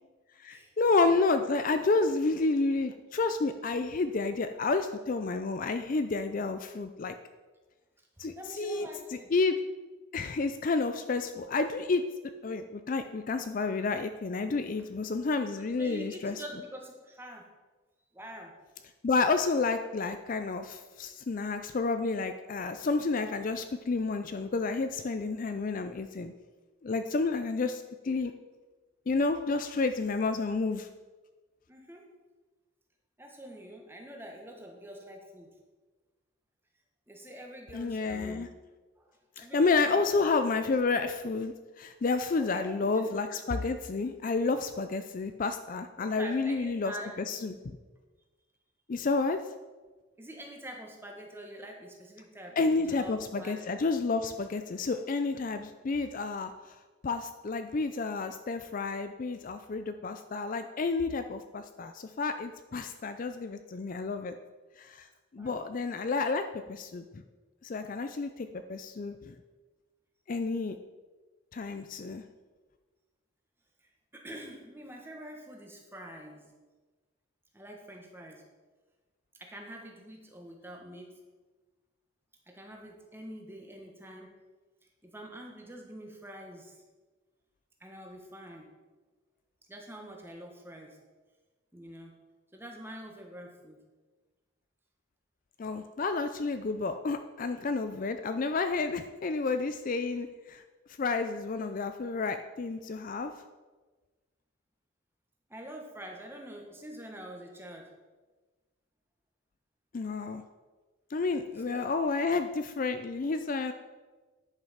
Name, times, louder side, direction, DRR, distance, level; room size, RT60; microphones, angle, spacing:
voice 1, 0.4-7.1 8.2-9.6 10.1-12.0 12.4-16.4 19.0-26.3 26.8-28.3 29.1-30.9 37.7-38.5 39.4-46.9 47.3-47.8 48.9-49.4 52.6-56.7 57.0-64.3 64.8-65.1 65.3-66.4 66.7-67.2 67.6-69.4 70.3-70.8 71.5-72.2 95.6-100.6 101.0-103.3 109.9-110.4 111.1-113.7, left 3 dB, 40° left, 9 dB, 0.4 m, -30 dB
voice 2, 8.2-9.3 15.8-17.5 18.1-18.5 31.7-32.1 33.2-35.5 37.1-38.5 39.0-40.1 42.4-43.1 45.9-47.1 50.2-53.6 65.4-65.7 73.8-76.5 77.5-78.4 79.4-81.2 82.5-84.3 85.0-86.8 87.8-88.7 89.7-91.0 91.7-92.2 92.5-93.8 105.5-107.9 111.7-111.8, equal, 10° right, 1 dB, 1.3 m, -45 dB
10.0 x 5.7 x 5.7 m, 1.3 s
head